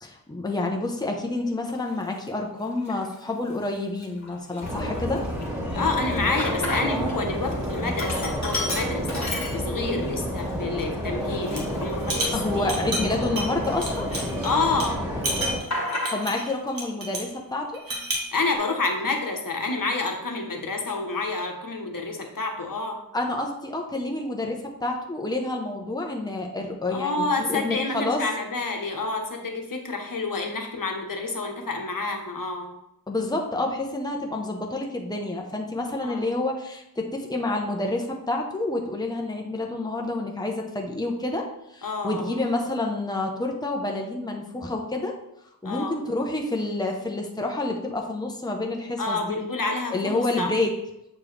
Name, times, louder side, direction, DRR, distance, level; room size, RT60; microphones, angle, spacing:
voice 1, 0.0-5.2 12.3-14.1 16.1-17.8 23.1-28.3 33.1-45.1 45.6-49.4 49.9-50.7, left 2 dB, 10° left, 1 dB, 0.9 m, -28 dB
Sink (filling or washing), 1.9-2.0 2.7-3.2 3.6-3.7 4.0-7.2 7.5-10.0 10.5-10.6 11.2-13.8 14.1-14.9 15.1-16.5, left 2 dB, 50° left, 1.5 m, -33 dB
sound 1, 4.6-15.6, equal, 10° right, 2.1 m, -29 dB
voice 2, 5.7-12.7 14.4-15.0 18.3-23.0 26.9-32.7 36.0-36.3 41.8-42.4 45.6-45.9 49.0-50.5, left 3 dB, 65° left, 3 dB, 1.1 m, -28 dB
sound 2, 11.4-11.7 12.0-14.5 14.8-14.9 15.2-17.3 17.7-18.3, right 1 dB, 70° right, 1.5 m, -30 dB
7.5 x 4.5 x 3.3 m, 0.83 s
wide cardioid pair, 75°, 36 cm